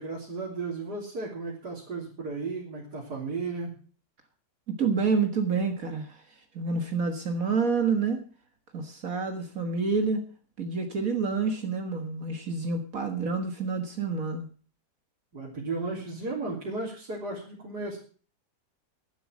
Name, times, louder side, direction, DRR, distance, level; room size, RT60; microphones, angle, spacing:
voice 1, 0.0-3.7 15.3-18.0, right 3 dB, 80° right, -5 dB, 3.8 m, -34 dB
voice 2, 4.7-6.2 6.5-8.2 8.7-10.3 10.6-14.5, right 4 dB, 60° right, 5 dB, 2.0 m, -28 dB
12.0 x 11.5 x 6.2 m, 0.41 s
omnidirectional pair, 1.7 m